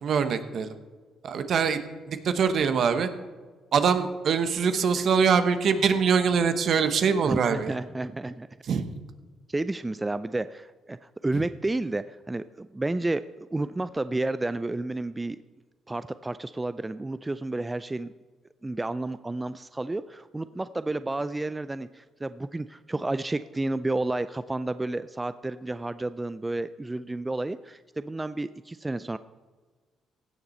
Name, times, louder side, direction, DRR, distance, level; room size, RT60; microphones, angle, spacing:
voice 1, 0.0-0.7 1.2-1.8 2.1-3.1 3.7-7.7 8.7-9.0, right 6 dB, 60° right, 10 dB, 0.9 m, -23 dB
voice 2, 7.2-8.5 9.5-15.4 15.9-18.1 18.6-29.2, right 2 dB, 20° right, 14 dB, 0.3 m, -31 dB
16.0 x 7.0 x 4.3 m, 1.4 s
supercardioid pair, 70°, 0 cm